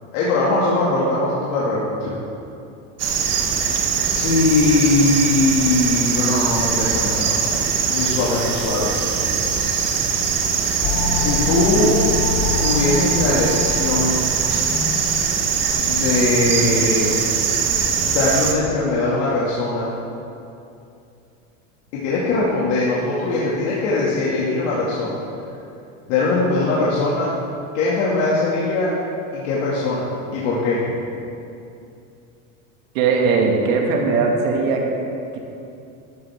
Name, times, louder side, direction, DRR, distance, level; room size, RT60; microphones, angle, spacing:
voice 1, 0.1-2.1 4.1-8.9 11.1-12.1 12.6-14.3 15.9-17.2 18.0-19.9 21.9-25.2 26.1-27.3 27.7-28.9 29.3-30.8, left 2 dB, 70° left, -7 dB, 2.4 m, -21 dB
sound 1, 3.0-18.5, right 6 dB, 40° right, 1.3 m, -22 dB
sound 2, 10.8-15.9, left 4 dB, 25° left, 0.5 m, -26 dB
voice 2, 32.9-34.8 35.3-35.4, right 4 dB, 75° right, 0 dB, 2.1 m, -19 dB
12.5 x 12.0 x 3.6 m, 2.6 s
supercardioid pair, 130°, 41 cm